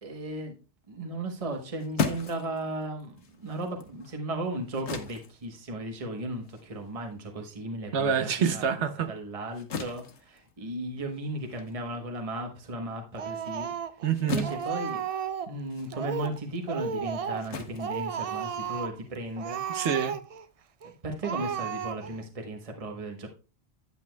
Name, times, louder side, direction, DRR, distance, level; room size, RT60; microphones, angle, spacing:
voice 1, 0.0-0.6 0.9-8.7 9.1-13.7 14.2-15.0 15.5-19.6 20.8-23.3, right 1 dB, 35° right, 1.2 m, -36 dB
sound 1, 1.4-8.2 8.6-18.8, left 6 dB, 90° left, 1.2 m, -39 dB
voice 2, 7.9-9.1 14.0-14.5 19.7-20.2, right 7 dB, 85° right, 1.1 m, -27 dB
Speech, 13.2-14.1 14.4-15.6 15.9-16.4 16.7-17.5 17.8-19.0 19.4-20.5 20.8-20.9 21.2-22.2, right 7 dB, 60° right, 0.3 m, -33 dB
9.3 x 8.3 x 2.2 m
omnidirectional pair, 1.1 m